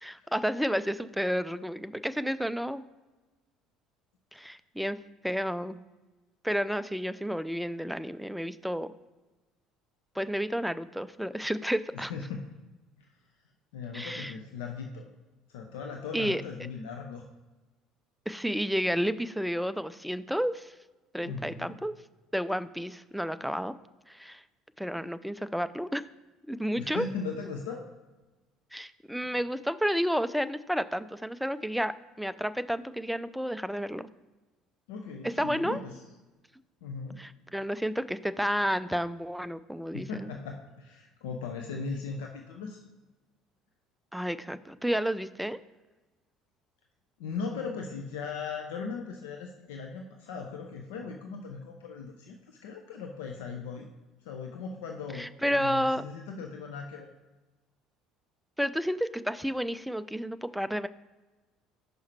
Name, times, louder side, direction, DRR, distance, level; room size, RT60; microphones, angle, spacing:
voice 1, 0.0-2.8 4.3-5.0 5.2-5.8 6.4-8.9 10.2-12.1 13.9-14.3 16.1-16.4 18.3-20.7 21.1-22.0 22.3-23.7 24.1-24.4 24.8-26.1 26.5-27.1 28.7-34.1 35.2-35.8 37.2-40.3 44.1-45.6 55.2-56.0 58.6-60.9, equal, ahead, 13 dB, 0.3 m, -31 dB
voice 2, 11.9-12.4 13.7-15.1 15.5-17.2 21.2-21.8 26.8-27.8 34.9-36.0 36.8-37.2 39.9-42.8 47.2-53.9 54.2-57.1, left 5 dB, 65° left, 2 dB, 0.5 m, -38 dB
5.6 x 5.2 x 4.5 m, 1.2 s
figure-of-eight pair, 60°, 0 cm